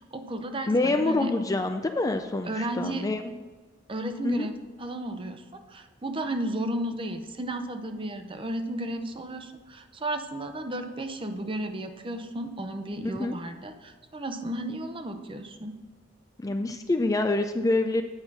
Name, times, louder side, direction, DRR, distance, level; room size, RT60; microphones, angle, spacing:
voice 1, 0.0-1.3 2.5-3.0 3.9-15.7, right 1 dB, 25° right, 7 dB, 0.7 m, -33 dB
voice 2, 0.7-3.4 4.2-4.5 13.0-13.4 16.4-18.0, left 2 dB, 20° left, 7 dB, 0.4 m, -26 dB
8.9 x 5.6 x 6.1 m, 1.4 s
head